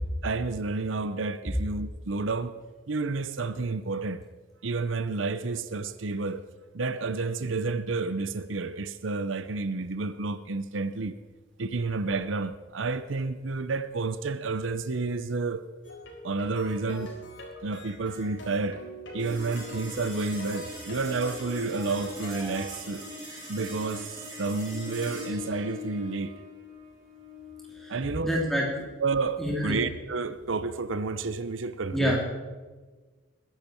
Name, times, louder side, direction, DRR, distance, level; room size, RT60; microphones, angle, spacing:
voice 1, 0.2-2.5 2.9-4.2 4.6-6.4 6.7-11.2 11.6-15.6 16.2-17.1 17.6-18.8 19.1-23.1 23.5-26.3 27.9-28.3 29.0-32.2, right 3 dB, 85° right, 0.7 m, -30 dB
sound 1, 15.8-22.7, left 1 dB, 75° left, 4.0 m, -43 dB
sound 2, 19.2-29.8, left 1 dB, 20° right, 6.0 m, -41 dB
voice 2, 28.2-28.6 29.4-29.8 31.9-32.2, equal, ahead, 3.2 m, -26 dB
21.0 x 10.5 x 4.5 m
head